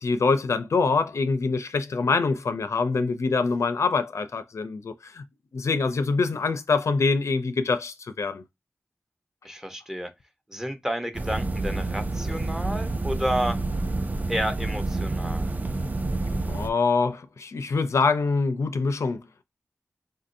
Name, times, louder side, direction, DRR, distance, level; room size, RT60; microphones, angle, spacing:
voice 1, 0.0-5.2 5.5-8.4 16.5-19.2, left 4 dB, 75° left, 0.4 m, -25 dB
voice 2, 9.4-10.1 10.5-13.6 14.3-15.5, equal, 10° right, 0.7 m, -30 dB
sound 1, 11.1-16.7, right 2 dB, 35° right, 0.4 m, -28 dB
3.7 x 2.6 x 2.5 m
cardioid pair, 40°, 5 cm